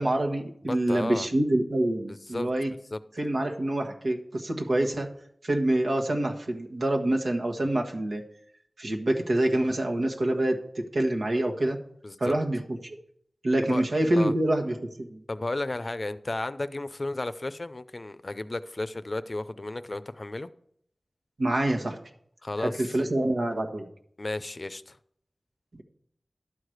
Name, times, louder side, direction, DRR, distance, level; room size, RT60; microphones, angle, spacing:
voice 1, 0.0-2.7 3.2-5.1 5.4-8.2 8.8-11.8 12.2-13.0 13.4-15.2 21.4-22.0 22.6-23.8, right 1 dB, 85° right, 1.4 m, -26 dB
voice 2, 0.6-1.3 2.1-2.5 2.9-3.0 12.0-12.3 13.6-13.8 14.2-14.3 15.3-20.5 22.4-23.0 24.2-25.0, left 2 dB, 45° left, 0.5 m, -33 dB
12.0 x 4.9 x 7.8 m
wide cardioid pair, 65°, 0 cm